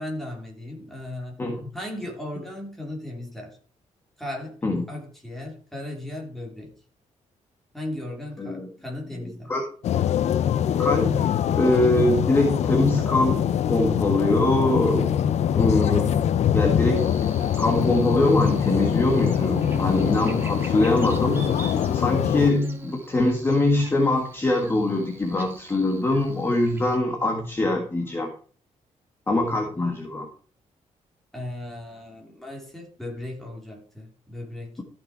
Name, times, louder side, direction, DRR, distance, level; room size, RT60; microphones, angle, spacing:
voice 1, 0.0-1.4 1.7-3.6 4.2-4.6 4.9-6.7 7.7-9.5 31.3-34.8, left 1 dB, ahead, -1 dB, 3.2 m, -36 dB
sound 1, 9.8-22.5, left 9 dB, 60° left, 0.5 m, -23 dB
voice 2, 10.8-11.3 11.5-15.2 15.5-16.2 16.5-17.3 17.6-21.5 21.9-28.3 29.3-30.3, left 2 dB, 20° left, 1 dB, 1.6 m, -23 dB
Buzz, 17.0-27.0, right 3 dB, 15° right, 1.9 m, -41 dB
14.0 x 6.1 x 4.7 m, 0.41 s
wide cardioid pair, 170°, 13 cm